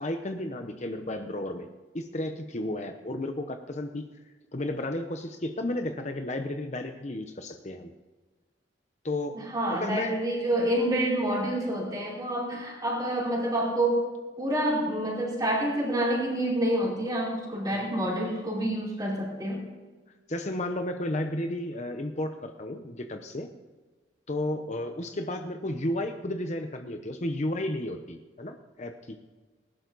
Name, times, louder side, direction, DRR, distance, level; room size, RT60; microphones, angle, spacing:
voice 1, 0.0-1.7 1.9-4.0 4.5-7.9 9.0-9.4 9.7-10.2 17.7-17.9 20.3-23.5 24.3-29.2, left 1 dB, 40° left, 6 dB, 0.8 m, -33 dB
voice 2, 9.5-14.1 14.4-19.6, right 1 dB, 20° right, -4 dB, 4.7 m, -28 dB
19.5 x 11.5 x 4.1 m, 1.3 s
head